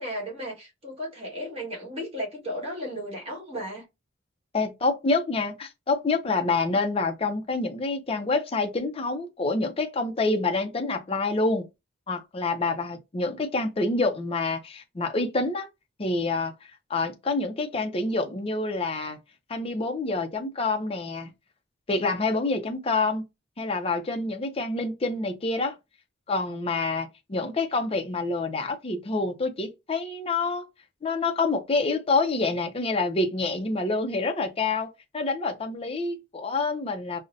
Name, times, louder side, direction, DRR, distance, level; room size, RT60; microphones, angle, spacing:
voice 1, 0.0-3.8 27.4-27.5, equal, 30° right, 1.5 m, -35 dB
voice 2, 4.5-11.6 12.1-15.7 16.0-16.5 16.9-19.2 19.5-21.3 21.9-23.3 23.6-25.8 26.3-30.7 31.0-37.2, left 3 dB, 30° left, 0.5 m, -27 dB
5.1 x 2.1 x 2.6 m
head